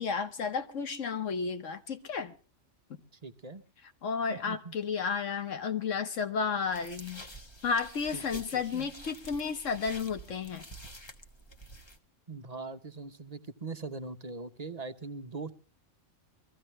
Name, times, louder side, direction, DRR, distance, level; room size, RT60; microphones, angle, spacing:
voice 1, 0.0-2.3 4.0-7.2 7.6-10.6, left 5 dB, 75° left, 1.4 m, -32 dB
voice 2, 3.2-3.6 4.3-4.7 8.1-8.4 8.7-8.9 12.3-15.5, right 3 dB, 35° right, 0.8 m, -41 dB
sound 1, 6.7-12.0, equal, 20° left, 1.2 m, -48 dB
23.5 x 14.5 x 3.2 m
omnidirectional pair, 1.3 m